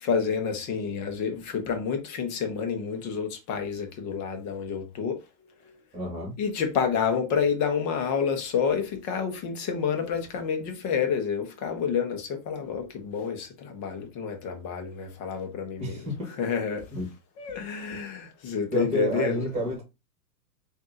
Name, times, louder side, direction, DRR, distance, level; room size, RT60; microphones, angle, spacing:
voice 1, 0.0-5.2 5.6-5.8 6.4-16.0 16.4-16.9 17.4-19.4, left 6 dB, 35° left, 1.0 m, -29 dB
voice 2, 5.9-6.4 15.8-16.3 16.9-17.1 18.7-19.8, right 1 dB, 15° right, 2.3 m, -30 dB
3.8 x 2.8 x 3.6 m
hypercardioid pair, 120°, 50 cm